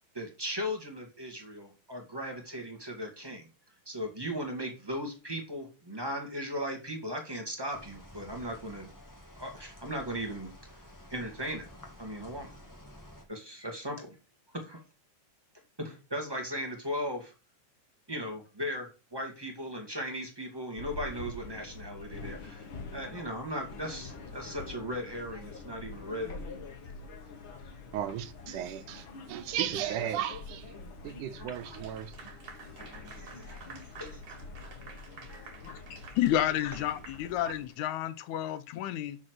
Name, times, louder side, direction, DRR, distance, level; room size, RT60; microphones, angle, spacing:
voice 1, 0.1-3.5 3.8-8.9 9.4-10.5 11.1-11.7 12.0-12.5 13.3-14.2 14.6-14.8 15.8-17.3 18.1-22.7 22.9-26.7 31.4-31.6 32.8-34.2 35.3-35.5 36.8-36.9 37.4-37.5, equal, 10° right, 1.3 m, -37 dB
sound 1, 7.7-13.2, left 1 dB, 15° left, 0.6 m, -51 dB
sound 2, 20.8-37.7, left 4 dB, 50° left, 2.0 m, -46 dB
voice 2, 27.9-30.7 31.0-32.1, right 11 dB, 80° right, 2.3 m, -35 dB
Clapping / Applause, 31.5-37.9, right 5 dB, 55° right, 2.9 m, -50 dB
voice 3, 36.2-39.2, left 12 dB, 80° left, 1.9 m, -30 dB
6.5 x 5.8 x 6.2 m
omnidirectional pair, 3.5 m